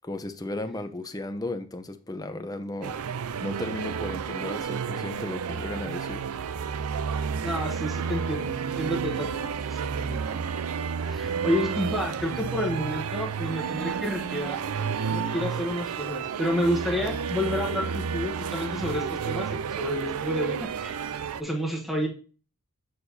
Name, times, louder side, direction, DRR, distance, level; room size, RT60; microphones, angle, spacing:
voice 1, 0.0-3.0 3.4-6.2, left 2 dB, 15° left, 0.6 m, -35 dB
sound 1, 2.8-21.4, right 6 dB, 90° right, 0.4 m, -31 dB
voice 2, 7.1-10.4 11.0-14.6 15.1-22.1, equal, ahead, 1.1 m, -30 dB
7.9 x 6.5 x 2.7 m
head